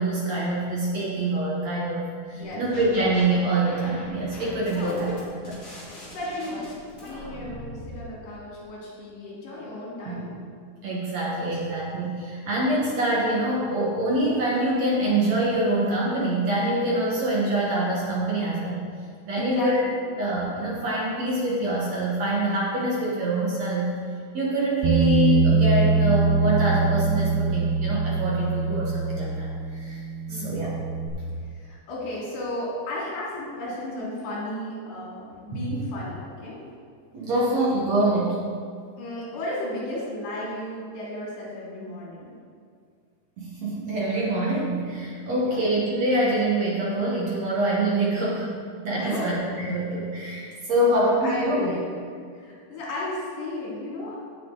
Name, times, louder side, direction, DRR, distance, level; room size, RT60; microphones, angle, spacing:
voice 1, 0.0-5.1 5.4-5.6 10.0-10.2 10.8-18.8 19.3-19.9 20.2-23.9 24.3-30.0 30.3-30.7 35.5-35.8 37.1-38.4 43.4-48.5 48.8-51.7, right 1 dB, 55° right, -6 dB, 2.3 m, -25 dB
sound 1, 2.4-3.2 3.6-8.0, equal, 40° left, 3.1 m, -42 dB
voice 2, 4.7-5.0 6.1-10.4 19.4-19.7 30.3-30.7 31.5-36.6 39.0-42.3 45.3-45.6 49.0-49.3 50.8-51.0 51.2-52.0 52.3-54.4, left 1 dB, 85° left, -5 dB, 4.8 m, -34 dB
Bass guitar, 24.8-31.1, right 5 dB, 70° right, 3.1 m, -23 dB
17.5 x 6.1 x 4.1 m, 2.2 s
omnidirectional pair, 4.6 m